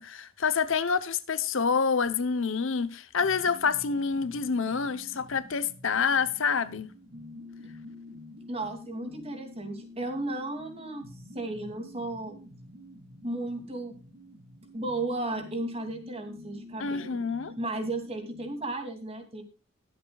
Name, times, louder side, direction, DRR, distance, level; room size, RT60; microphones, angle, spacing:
voice 1, 0.0-6.9 16.8-17.5, left 5 dB, 65° left, 0.8 m, -27 dB
sound 1, 3.2-18.7, left 2 dB, 70° right, 2.5 m, -48 dB
voice 2, 8.5-11.1 11.3-12.3 13.2-13.9 14.7-17.2 17.6-19.4, right 2 dB, 30° right, 2.7 m, -34 dB
21.0 x 7.7 x 2.4 m
head